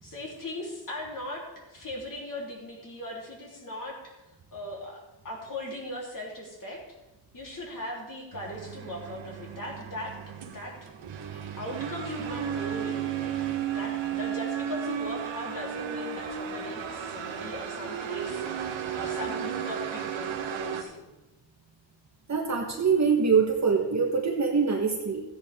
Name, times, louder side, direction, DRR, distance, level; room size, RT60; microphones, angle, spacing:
voice 1, 0.0-1.4 1.7-4.1 4.5-6.8 7.3-10.1 10.5-10.9 11.6-21.0, left 1 dB, 45° left, -3 dB, 3.6 m, -39 dB
sound 1, 8.3-20.8, right 8 dB, 75° right, 1.4 m, -34 dB
voice 2, 22.3-25.2, right 5 dB, 35° right, 0 dB, 1.4 m, -24 dB
14.5 x 10.0 x 3.7 m, 1.0 s
cardioid pair, 95°, 46 cm